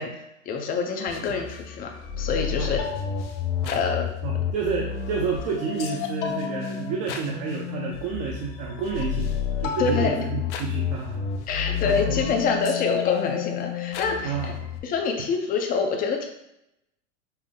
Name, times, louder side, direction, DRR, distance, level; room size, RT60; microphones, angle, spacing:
voice 1, 0.0-1.9 2.2-2.8 3.7-4.0 9.8-10.2 11.5-14.5 14.8-16.3, left 5 dB, 25° left, 3 dB, 0.6 m, -26 dB
sound 1, 1.1-14.8, left 8 dB, 65° left, 0.7 m, -30 dB
voice 2, 2.6-3.0 3.6-3.8 4.2-9.3 9.6-11.4 11.8-12.2 14.2-14.7, right 5 dB, 45° right, -2 dB, 0.8 m, -30 dB
5.6 x 2.0 x 3.6 m, 0.82 s
supercardioid pair, 130°, 38 cm